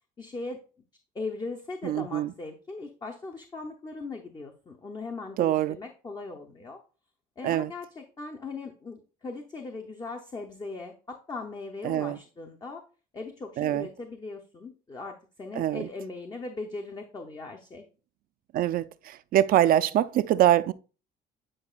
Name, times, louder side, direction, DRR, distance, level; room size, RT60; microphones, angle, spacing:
voice 1, 0.2-0.6 1.1-6.8 7.4-12.8 13.1-17.8, left 3 dB, 25° left, 0.7 m, -39 dB
voice 2, 1.8-2.3 5.4-5.8 7.4-7.7 11.8-12.2 13.6-13.9 15.6-15.9 18.5-20.7, right 12 dB, 60° right, 0.4 m, -24 dB
8.7 x 4.7 x 2.4 m
cardioid pair, 110°, 17 cm